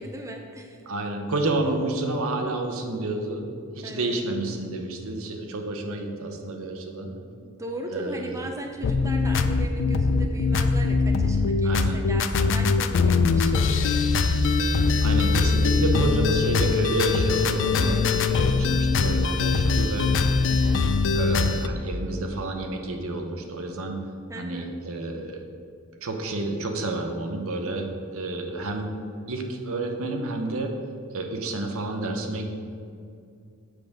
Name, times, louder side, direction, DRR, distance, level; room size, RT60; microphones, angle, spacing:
voice 1, 0.0-0.8 3.8-4.2 7.4-14.1 17.8-18.4 20.5-20.8 24.3-24.7, right 1 dB, 15° right, 2 dB, 0.5 m, -37 dB
voice 2, 0.9-3.4 3.7-7.1 7.9-8.4 11.6-12.0 12.4-12.6 15.0-20.1 21.1-24.0 24.4-25.4 26.0-27.9 28.1-28.9 29.3-30.7 31.1-32.5, right 2 dB, 65° right, 4 dB, 0.9 m, -29 dB
sound 1, 8.8-21.7, left 4 dB, 60° left, 0.4 m, -22 dB
7.7 x 3.6 x 6.4 m, 2.4 s
head